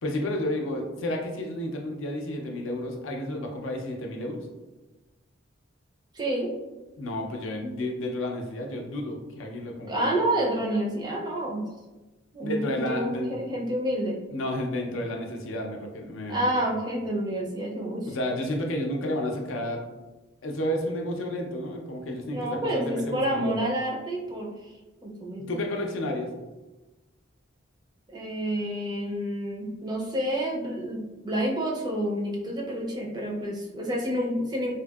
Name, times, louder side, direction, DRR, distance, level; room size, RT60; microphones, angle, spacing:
voice 1, 0.0-4.5 7.0-10.1 12.4-13.6 14.3-16.5 18.1-19.8 20.4-23.5 25.5-26.3, left 1 dB, 85° left, 1 dB, 0.5 m, -31 dB
voice 2, 6.1-6.5 9.9-11.6 12.3-14.2 16.3-18.1 22.3-24.7 25.0-25.5 28.1-34.7, right 1 dB, 20° right, -1 dB, 0.4 m, -29 dB
2.8 x 2.6 x 2.3 m, 1.1 s
head